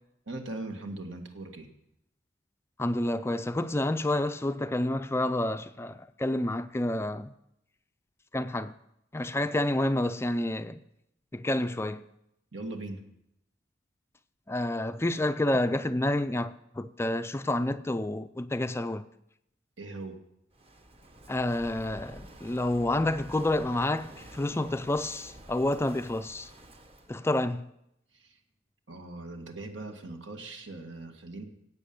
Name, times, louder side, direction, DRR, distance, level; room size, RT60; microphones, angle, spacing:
voice 1, 0.3-1.7 12.5-13.0 19.8-20.2 28.1-28.4 28.9-31.4, right 2 dB, 75° right, 2.0 m, -40 dB
voice 2, 2.8-7.3 8.3-8.7 9.1-10.8 11.3-12.1 14.5-19.0 21.3-26.5 27.1-27.7, left 1 dB, 15° left, 0.4 m, -29 dB
Walk footsteps / Wind / Waves surf, 20.5-27.1, right 1 dB, 30° right, 1.1 m, -49 dB
16.5 x 8.5 x 7.1 m
head